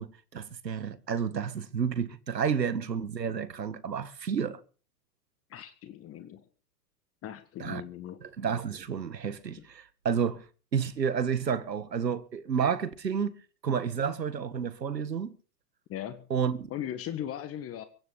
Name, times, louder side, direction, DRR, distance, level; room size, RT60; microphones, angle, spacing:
voice 1, 0.0-4.6 7.6-7.8 8.2-10.4 10.7-13.4 13.6-15.3 16.3-16.7, right 7 dB, 85° right, 2.0 m, -30 dB
voice 2, 5.5-6.4 7.2-8.2 9.6-9.7 15.9-16.3 16.7-17.8, left 11 dB, 30° left, 1.5 m, -38 dB
23.5 x 9.8 x 5.6 m
hypercardioid pair, 110°, 48 cm